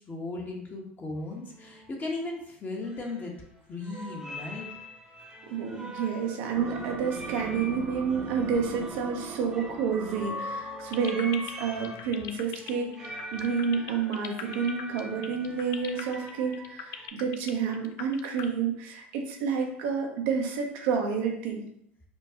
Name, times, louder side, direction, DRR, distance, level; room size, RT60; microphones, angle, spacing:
voice 1, 0.1-3.3 3.7-4.7, left 2 dB, 30° left, 0 dB, 1.0 m, -36 dB
sound 1, 1.2-1.3 1.5-1.9 2.8-3.6 3.8-17.1, left 1 dB, 10° right, 0.9 m, -43 dB
voice 2, 5.5-21.6, right 6 dB, 70° right, 2 dB, 0.7 m, -29 dB
sound 2, 6.6-12.2, right 6 dB, 35° right, 0.4 m, -41 dB
sound 3, 10.8-18.4, left 11 dB, 60° left, 0.4 m, -39 dB
4.4 x 2.2 x 2.8 m, 0.70 s
hypercardioid pair, 80°, 7 cm